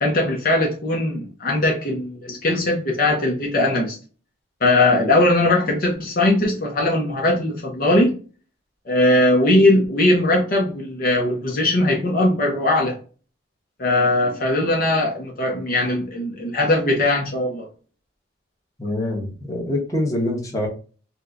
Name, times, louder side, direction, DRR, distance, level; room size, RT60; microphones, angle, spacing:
voice 1, 0.0-4.0 4.6-8.1 8.9-13.0 13.8-17.7, left 1 dB, 50° left, 0.7 m, -19 dB
voice 2, 18.8-20.7, left 1 dB, 20° left, 1.0 m, -25 dB
4.2 x 2.2 x 2.5 m
head